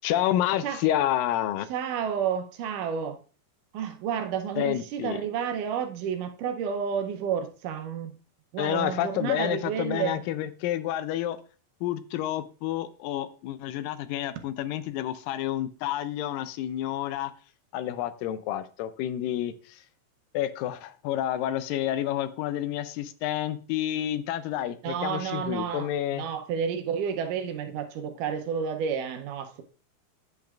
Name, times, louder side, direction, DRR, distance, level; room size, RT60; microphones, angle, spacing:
voice 1, 0.0-1.7 4.6-5.2 8.6-11.4 11.8-17.3 17.7-19.8 20.3-26.3, left 12 dB, 90° left, 2.3 m, -29 dB
voice 2, 1.7-3.2 3.7-8.2 8.5-10.2 24.8-29.6, right 7 dB, 75° right, 2.2 m, -31 dB
8.5 x 7.9 x 2.4 m
omnidirectional pair, 3.9 m